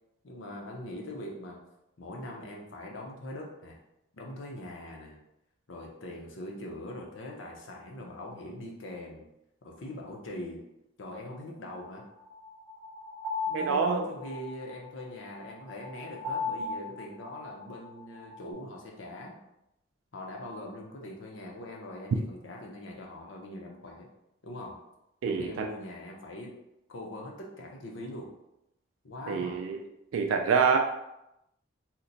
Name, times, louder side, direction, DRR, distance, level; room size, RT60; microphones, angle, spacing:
voice 1, 0.2-1.6 2.0-3.8 4.1-5.2 5.7-9.3 9.6-10.6 11.0-12.1 13.5-19.4 20.1-24.1 24.4-24.8 25.2-26.5 26.9-28.3 29.0-29.6, left 1 dB, 80° left, -1 dB, 0.7 m, -42 dB
sound 1, 11.7-18.5, left 3 dB, 5° right, 1.1 m, -38 dB
voice 2, 13.5-14.1 25.2-25.7 29.3-29.8 30.1-30.8, right 5 dB, 90° right, 3 dB, 0.3 m, -26 dB
2.9 x 2.1 x 3.9 m, 0.86 s
head